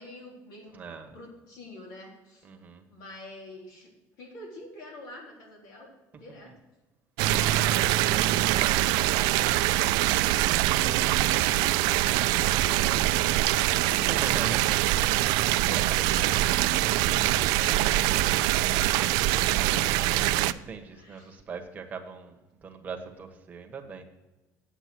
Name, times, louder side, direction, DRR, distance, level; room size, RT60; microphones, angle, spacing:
voice 1, 0.0-0.8 1.1-2.5 2.9-3.9 4.2-5.9 6.2-6.5 7.2-11.2 11.5-14.6 15.1-15.3 15.7-19.0 19.7-20.6 20.9-21.4, left 2 dB, 70° left, -1 dB, 3.8 m, -45 dB
voice 2, 0.7-1.2 2.4-2.8 6.4-6.5 14.0-15.0 19.9-22.3 22.6-24.0, right 5 dB, 25° right, 4 dB, 1.3 m, -40 dB
sound 1, 7.2-20.5, right 16 dB, 85° right, 0.4 m, -24 dB
9.0 x 7.9 x 6.1 m, 1.1 s
cardioid pair, 160°, 7 cm